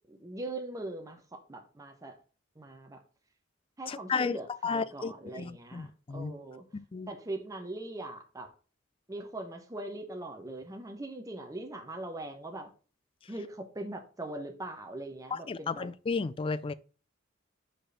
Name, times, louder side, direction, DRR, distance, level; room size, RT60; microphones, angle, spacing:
voice 1, 0.1-2.2 2.6-3.0 3.8-6.6 7.1-8.5 9.1-12.7 13.3-15.9, right 2 dB, 15° right, 0.8 m, -41 dB
voice 2, 3.9-4.4 4.6-6.3 6.9-7.1 15.3-16.7, left 4 dB, 25° left, 0.3 m, -33 dB
5.1 x 4.4 x 5.6 m
head